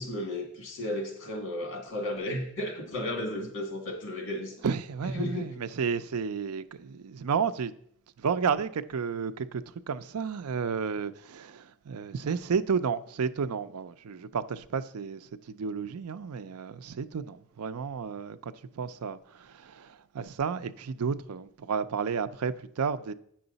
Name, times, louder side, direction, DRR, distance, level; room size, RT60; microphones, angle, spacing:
voice 1, 0.0-4.6 5.2-5.5, left 1 dB, 60° left, 2.1 m, -34 dB
voice 2, 4.6-7.7 8.2-23.1, right 6 dB, 85° right, 0.5 m, -32 dB
8.7 x 6.3 x 4.0 m
head